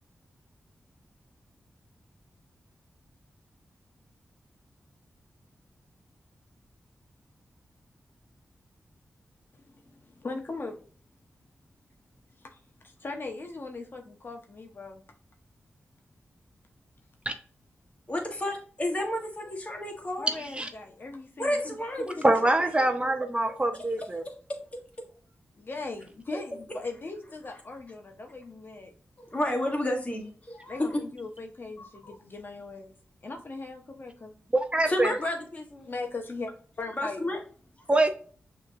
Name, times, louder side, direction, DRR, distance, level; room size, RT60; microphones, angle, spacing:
voice 1, 9.5-10.8 12.4-15.0 20.2-22.2 22.8-23.1 23.4-23.6 25.6-28.9 30.7-32.9 33.2-34.3 35.8-37.3, left 3 dB, 50° left, 3 dB, 0.9 m, -39 dB
voice 2, 18.1-20.3 21.4-22.7 24.2-24.6 26.3-26.4 29.2-31.0 31.8-32.1 34.9-35.9 37.0-37.4, left 1 dB, 30° left, 2 dB, 1.5 m, -31 dB
voice 3, 20.4-20.7 22.2-24.2 34.5-35.1 37.9-38.1, right 2 dB, 25° right, 7 dB, 0.5 m, -24 dB
6.2 x 2.9 x 2.4 m, 0.43 s
cardioid pair, 65°, 5 cm